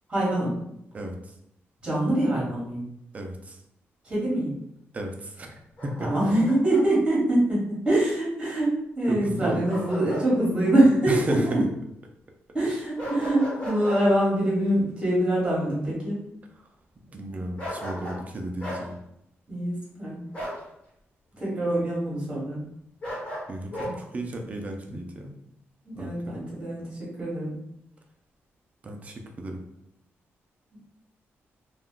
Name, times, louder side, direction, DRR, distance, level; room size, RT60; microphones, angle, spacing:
voice 1, 0.1-0.6 1.8-2.8 4.0-4.5 6.0-11.6 12.5-16.2 19.5-20.3 21.3-22.6 24.9-25.0 26.0-27.6, right 1 dB, 15° right, -6 dB, 1.2 m, -24 dB
voice 2, 0.9-1.3 3.1-3.6 4.9-6.1 9.1-9.7 11.1-11.6 17.0-19.0 23.5-25.4 25.9-26.3 28.8-29.6, right 1 dB, 30° right, 2 dB, 0.4 m, -33 dB
Bark, 5.8-6.8 9.7-10.3 10.6-10.8 13.0-14.0 17.6-18.2 18.6-18.8 20.3-20.6 23.0-23.9, equal, 25° left, 1.2 m, -35 dB
2.3 x 2.3 x 3.6 m, 0.79 s
wide cardioid pair, 140°, 5 cm